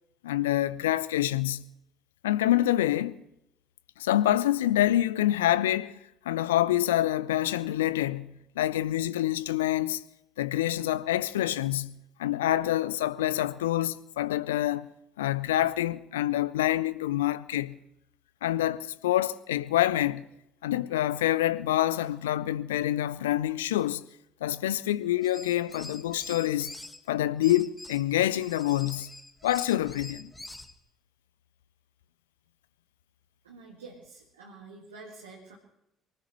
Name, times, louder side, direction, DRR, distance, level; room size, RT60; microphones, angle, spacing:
voice 1, 0.2-1.7 2.2-3.2 4.0-6.0 6.2-10.0 10.4-14.9 15.2-17.8 18.4-20.2 20.6-24.0 24.4-26.7 27.1-29.1 29.4-30.3, left 13 dB, 75° left, 0.5 m, -26 dB
sound 1, 25.2-27.0 27.4-30.7, left 2 dB, 10° left, 1.7 m, -45 dB
voice 2, 33.4-35.6, right 3 dB, 80° right, 2.0 m, -48 dB
24.0 x 19.0 x 3.1 m
figure-of-eight pair, 55°, 0 cm